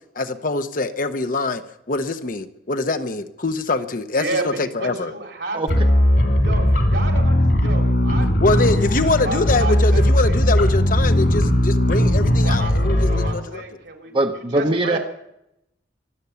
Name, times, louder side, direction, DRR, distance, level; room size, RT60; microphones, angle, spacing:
voice 1, 0.2-5.1 8.4-13.6, left 2 dB, 50° left, 9 dB, 1.0 m, -24 dB
voice 2, 4.1-5.8 6.4-10.4 12.4-12.8 13.1-15.0, right 3 dB, 75° right, 2 dB, 3.3 m, -31 dB
sound 1, 5.7-13.3, left 1 dB, 70° left, 3.4 m, -18 dB
voice 3, 14.1-15.0, right 2 dB, 30° right, 5 dB, 0.9 m, -21 dB
24.0 x 8.2 x 7.1 m, 0.83 s
head